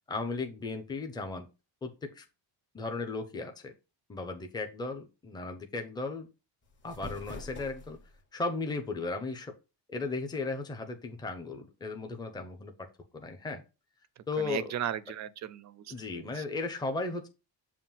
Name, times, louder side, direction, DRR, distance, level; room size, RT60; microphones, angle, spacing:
voice 1, 0.1-1.5 1.8-2.2 2.7-3.7 4.1-6.3 6.8-8.0 8.3-9.5 9.9-12.7 13.1-13.6 14.3-14.7 15.9-17.3, left 3 dB, 10° left, 0.6 m, -36 dB
sound 1, 6.6-8.2, left 2 dB, 25° left, 1.2 m, -45 dB
voice 2, 14.4-16.4, right 10 dB, 40° right, 0.4 m, -37 dB
7.2 x 2.6 x 5.5 m
cardioid pair, 165°, 45 cm